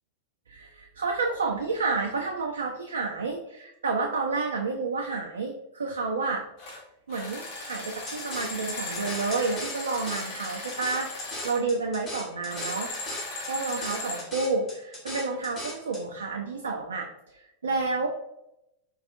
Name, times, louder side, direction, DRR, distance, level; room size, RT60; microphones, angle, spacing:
voice 1, 0.5-6.4 7.1-11.1 11.4-12.9 13.5-18.1, right 3 dB, 70° right, 1 dB, 0.4 m, -30 dB
sound 1, 6.6-6.8 7.1-11.6 12.5-14.3, left 2 dB, 50° left, 0.9 m, -37 dB
sound 2, 8.1-16.0, left 1 dB, 25° left, 1.3 m, -39 dB
4.6 x 2.4 x 2.5 m, 0.84 s
figure-of-eight pair, 90°, 0 cm